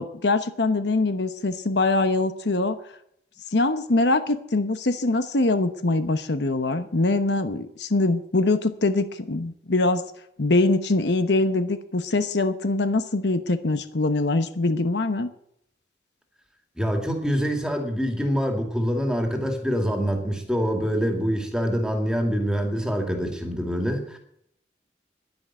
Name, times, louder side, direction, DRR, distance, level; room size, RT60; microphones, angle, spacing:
voice 1, 0.0-2.8 3.5-10.0 10.4-15.3, left 2 dB, 70° left, 10 dB, 1.0 m, -23 dB
voice 2, 16.8-24.2, equal, 5° right, 3 dB, 2.3 m, -25 dB
10.5 x 10.5 x 8.7 m, 0.71 s
head